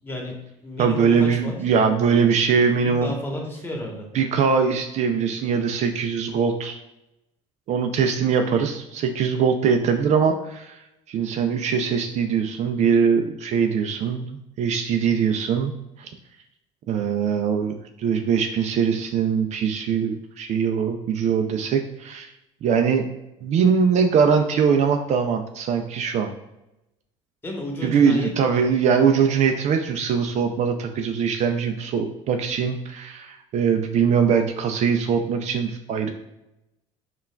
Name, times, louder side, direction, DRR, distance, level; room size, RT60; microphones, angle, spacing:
voice 1, 0.0-0.4 0.6-1.5 3.0-4.1 27.4-28.8, left 1 dB, 15° left, 0 dB, 1.1 m, -32 dB
voice 2, 0.8-3.1 4.1-6.8 7.7-10.8 11.1-14.3 14.6-15.7 16.0-16.1 16.9-22.3 22.6-23.1 23.4-26.3 27.8-36.1, right 6 dB, 55° right, 5 dB, 0.4 m, -22 dB
5.5 x 2.3 x 2.2 m, 0.90 s
supercardioid pair, 90°, 14 cm